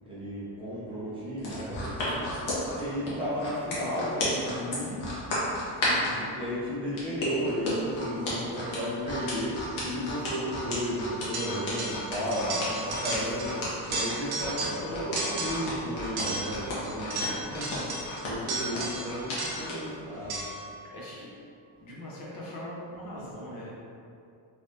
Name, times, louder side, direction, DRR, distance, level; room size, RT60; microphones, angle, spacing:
voice 1, 0.0-2.2 2.7-5.1 6.4-13.5 13.9-17.8 18.2-20.4, equal, 10° right, -12 dB, 0.6 m, -33 dB
sound 1, 1.4-6.1 7.0-19.8 20.2-20.4, left 2 dB, 85° left, 1.2 m, -33 dB
voice 2, 5.8-6.3 12.1-12.8 14.3-15.0 16.5-17.5 18.7-18.9 20.9-21.3 21.8-23.7, left 1 dB, 45° left, -6 dB, 0.8 m, -41 dB
sound 2, 11.3-12.1 12.3-13.6 13.8-14.8 15.2-15.8 16.2-19.8 20.3-20.7, right 2 dB, 50° right, 0.7 m, -34 dB
3.3 x 3.2 x 2.7 m, 2.5 s
cardioid pair, 180°, 47 cm